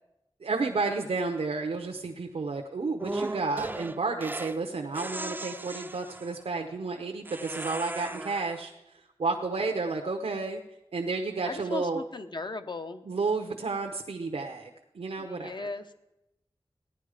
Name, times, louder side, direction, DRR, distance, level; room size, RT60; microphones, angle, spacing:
voice 1, 0.4-10.6 10.9-12.0 13.0-14.7 14.9-15.7, right 3 dB, 90° right, 3 dB, 0.9 m, -31 dB
sound 1, 3.0-4.6 4.9-6.4 7.2-8.7, right 2 dB, 20° right, 0.5 m, -37 dB
voice 2, 11.4-13.0 15.2-15.9, left 3 dB, 50° left, 9 dB, 0.9 m, -37 dB
15.5 x 10.5 x 5.0 m, 0.90 s
wide cardioid pair, 60°, 10 cm